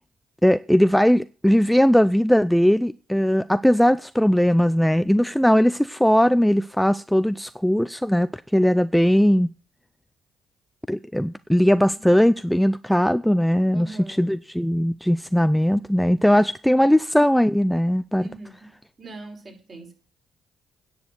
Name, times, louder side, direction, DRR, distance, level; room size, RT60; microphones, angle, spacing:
voice 1, 0.4-9.5 10.9-18.2, equal, 5° left, 0.4 m, -19 dB
voice 2, 13.7-14.3 18.2-18.7 19.0-19.9, right 2 dB, 45° right, 5.3 m, -41 dB
9.6 x 6.5 x 7.8 m
supercardioid pair, 60°, 0 cm